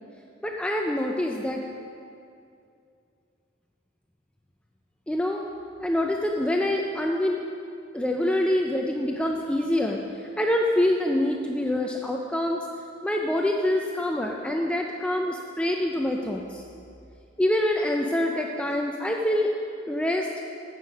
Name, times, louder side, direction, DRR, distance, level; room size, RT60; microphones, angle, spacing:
voice 1, 0.4-1.6 5.1-5.4 5.8-7.4 7.9-10.0 10.4-12.6 13.0-16.6 17.4-19.5 19.9-20.3, left 1 dB, 5° left, 1 dB, 0.4 m, -25 dB
10.5 x 8.0 x 5.4 m, 2.5 s
head